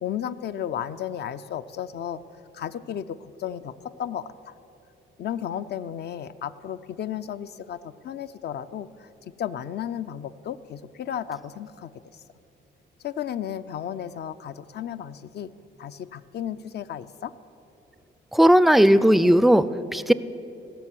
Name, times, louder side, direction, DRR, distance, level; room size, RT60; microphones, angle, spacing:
voice 1, 0.0-2.2 2.5-4.5 5.2-9.1 9.4-12.2 13.0-15.5 15.8-17.3, left 9 dB, 55° left, 13 dB, 0.5 m, -34 dB
voice 2, 18.3-20.1, equal, ahead, 15 dB, 0.3 m, -17 dB
17.0 x 6.1 x 7.5 m, 2.9 s
cardioid pair, 90°, 20 cm